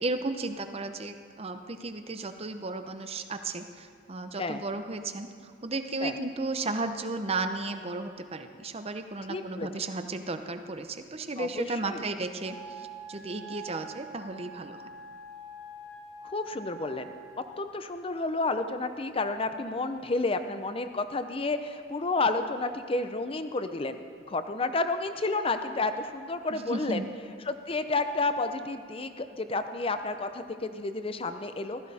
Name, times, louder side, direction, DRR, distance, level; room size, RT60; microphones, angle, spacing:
voice 1, 0.0-5.3 5.6-14.9 26.5-27.1, right 2 dB, 35° right, 8 dB, 0.7 m, -34 dB
voice 2, 9.3-9.7 11.4-12.0 13.3-13.6 16.2-17.1 17.6-24.0 24.3-27.0 27.5-31.8, left 3 dB, 30° left, 9 dB, 0.6 m, -31 dB
Wind instrument woodwind instrument, 12.4-17.6, right 3 dB, ahead, 1.4 m, -45 dB
15.5 x 14.0 x 4.2 m, 2.1 s
head